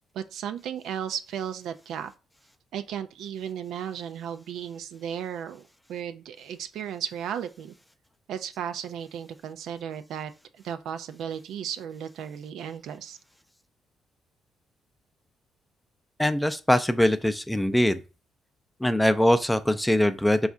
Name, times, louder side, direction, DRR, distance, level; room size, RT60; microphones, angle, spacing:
voice 1, 0.1-2.1 2.7-7.7 8.3-10.3 10.6-13.2, right 9 dB, 80° right, 0.4 m, -35 dB
voice 2, 16.2-18.0 18.8-20.5, left 1 dB, 5° left, 0.4 m, -22 dB
4.1 x 2.4 x 3.6 m
cardioid pair, 90°, 0 cm